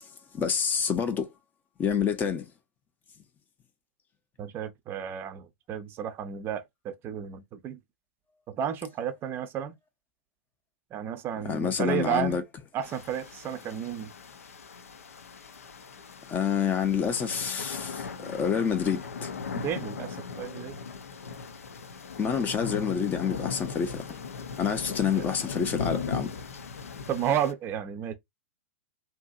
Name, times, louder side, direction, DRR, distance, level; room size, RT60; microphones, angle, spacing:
voice 1, 0.3-1.3 1.8-2.5 11.4-12.4 16.3-19.3 22.2-24.2 24.6-26.3, left 7 dB, 25° left, 0.6 m, -28 dB
voice 2, 4.4-7.8 8.5-9.7 10.9-12.4 12.7-14.1 19.5-20.8 25.1-25.3 27.1-28.1, right 9 dB, 30° right, 0.5 m, -32 dB
sound 1, 12.8-27.5, left 5 dB, 80° left, 0.5 m, -38 dB
2.7 x 2.5 x 2.4 m
hypercardioid pair, 110°, 8 cm